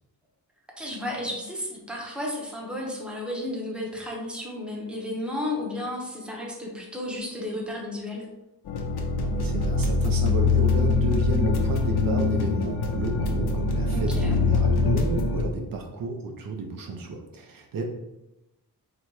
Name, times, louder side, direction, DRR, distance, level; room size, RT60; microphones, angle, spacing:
voice 1, 0.8-8.3 13.9-14.4, left 1 dB, 5° right, -2 dB, 0.7 m, -33 dB
sound 1, 8.7-15.4, left 3 dB, 75° left, 0.7 m, -23 dB
voice 2, 9.2-17.8, right 3 dB, 60° right, 3 dB, 0.6 m, -32 dB
4.0 x 2.2 x 4.6 m, 0.94 s
wide cardioid pair, 170°, 38 cm